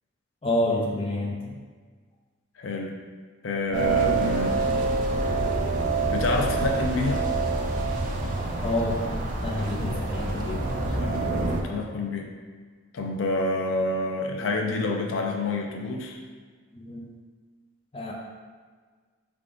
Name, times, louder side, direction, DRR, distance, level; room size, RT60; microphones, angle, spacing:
voice 1, 0.4-1.6 8.6-10.8 16.7-17.1 17.9-18.1, left 1 dB, 30° left, -2 dB, 0.5 m, -29 dB
voice 2, 2.6-3.0 3.4-4.6 6.1-7.3 11.0-12.3 12.9-16.2, left 2 dB, 85° left, 1 dB, 0.5 m, -28 dB
sound 1, 3.7-11.6, right 3 dB, 40° right, 0.4 m, -26 dB
4.6 x 3.5 x 2.5 m, 1.5 s
head